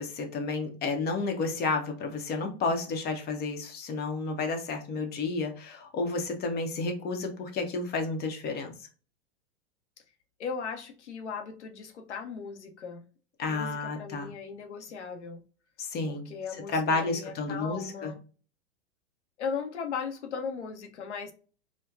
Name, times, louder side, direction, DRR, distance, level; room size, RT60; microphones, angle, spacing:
voice 1, 0.0-8.7 13.4-14.3 15.8-16.3 16.7-18.1, left 3 dB, 30° left, 0.8 m, -31 dB
voice 2, 10.4-13.1 13.5-15.4 16.0-18.2 19.4-21.3, left 6 dB, 90° left, 0.8 m, -37 dB
4.3 x 2.2 x 2.4 m
hypercardioid pair, 110°, 34 cm